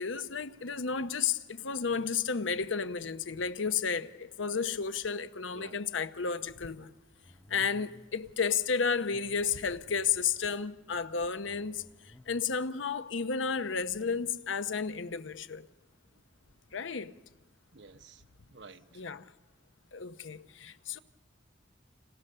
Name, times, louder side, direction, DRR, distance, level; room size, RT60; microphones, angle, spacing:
voice 1, 0.0-6.9 7.5-15.7 16.7-17.2 18.9-19.3 19.9-21.0, left 6 dB, 90° left, 0.8 m, -32 dB
voice 2, 5.5-5.8 16.1-16.2 17.7-19.0, right 4 dB, 70° right, 1.0 m, -53 dB
sound 1, 7.2-8.2 8.9-10.3 11.2-12.5, left 1 dB, 10° left, 0.8 m, -57 dB
30.0 x 28.0 x 6.7 m
head